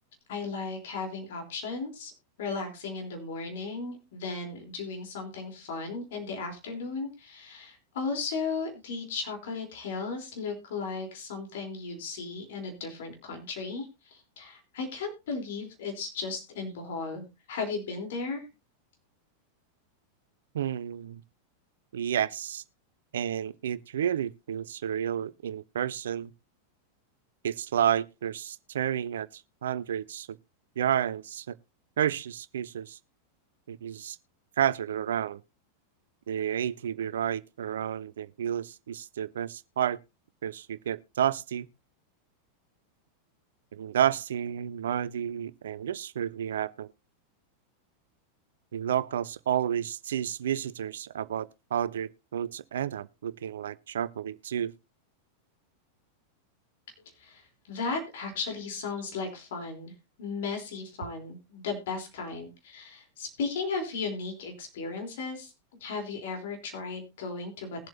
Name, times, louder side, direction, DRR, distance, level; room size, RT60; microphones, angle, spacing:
voice 1, 0.3-2.1 2.4-18.5 57.2-57.4 57.7-59.9 60.2-65.5 65.8-67.9, left 4 dB, 55° left, 3.6 m, -35 dB
voice 2, 20.5-21.2 21.9-22.6 23.1-26.3 27.4-30.3 30.8-31.5 32.0-33.0 33.7-34.2 34.6-35.4 36.3-40.0 40.4-41.7 43.7-46.9 48.7-54.7, right 9 dB, 60° right, 0.6 m, -31 dB
21.0 x 7.5 x 2.8 m
figure-of-eight pair, 90°, 0 cm